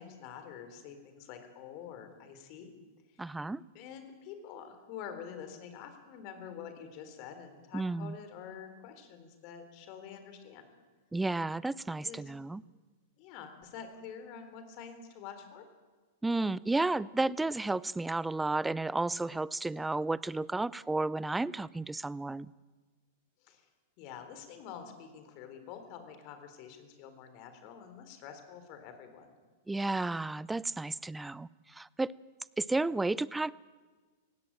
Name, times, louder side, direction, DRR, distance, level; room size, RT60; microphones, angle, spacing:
voice 1, 0.0-2.7 3.1-3.4 3.7-10.6 12.0-12.2 13.2-15.7 23.4-23.7 24.0-29.4, left 8 dB, 50° left, 8 dB, 4.0 m, -47 dB
voice 2, 3.2-3.6 7.7-8.2 11.1-12.6 16.2-22.5 29.7-32.1 32.6-33.5, right 2 dB, 10° right, 21 dB, 0.5 m, -32 dB
18.0 x 17.0 x 8.9 m, 1.3 s
hypercardioid pair, 120°, 0 cm